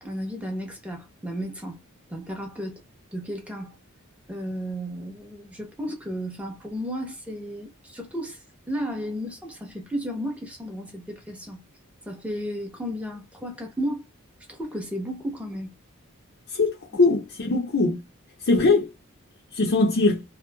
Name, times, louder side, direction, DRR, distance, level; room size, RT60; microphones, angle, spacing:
voice 1, 0.0-1.8 2.1-2.8 3.1-3.7 4.3-8.4 8.7-11.6 12.1-14.0 14.5-15.7, equal, 5° right, 0.8 m, -33 dB
voice 2, 16.5-18.0 18.5-18.9 19.5-20.2, left 3 dB, 55° left, 0.6 m, -21 dB
3.0 x 2.0 x 2.2 m
head